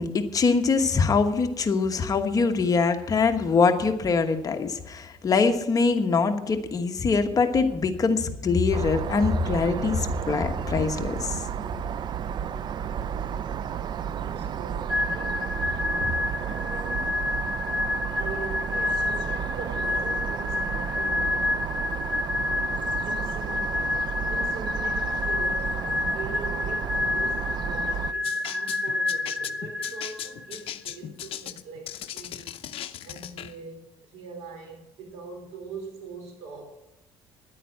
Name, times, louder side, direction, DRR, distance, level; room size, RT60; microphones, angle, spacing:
voice 1, 0.0-11.4, left 4 dB, 35° left, 6 dB, 1.2 m, -23 dB
sound 1, 8.7-28.1, right 8 dB, 40° right, 0.4 m, -32 dB
voice 2, 14.1-17.2 18.1-21.4 23.0-33.8 34.1-36.6, right 4 dB, 85° right, 3 dB, 4.2 m, -41 dB
sound 2, 14.9-30.5, left 2 dB, 10° right, 1.3 m, -29 dB
sound 3, 28.2-33.6, left 11 dB, 60° left, 0.7 m, -38 dB
10.5 x 9.2 x 7.8 m, 0.90 s
cardioid pair, 115°, 11 cm